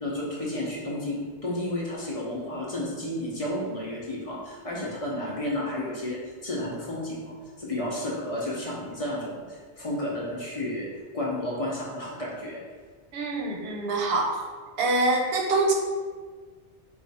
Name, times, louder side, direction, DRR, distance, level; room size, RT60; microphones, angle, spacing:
voice 1, 0.0-10.9 11.1-12.6, left 1 dB, 35° left, -4 dB, 0.7 m, -32 dB
voice 2, 13.1-14.4 14.8-15.7, right 2 dB, 65° right, 0 dB, 0.9 m, -25 dB
4.2 x 2.4 x 4.1 m, 1.5 s
omnidirectional pair, 1.2 m